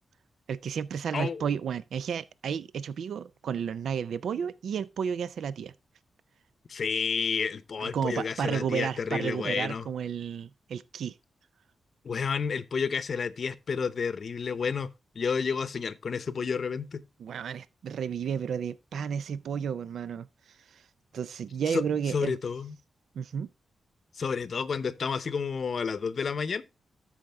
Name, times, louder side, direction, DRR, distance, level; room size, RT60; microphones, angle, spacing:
voice 1, 0.5-5.7 7.8-11.1 17.2-20.9 21.1-22.4 23.1-23.5, right 7 dB, 80° right, 0.4 m, -32 dB
voice 2, 1.1-1.4 6.7-9.9 12.0-14.9 15.1-17.0 21.7-21.8 22.1-22.7 24.1-26.6, left 5 dB, 50° left, 0.7 m, -30 dB
13.0 x 5.0 x 3.4 m
cardioid pair, 105°, 0 cm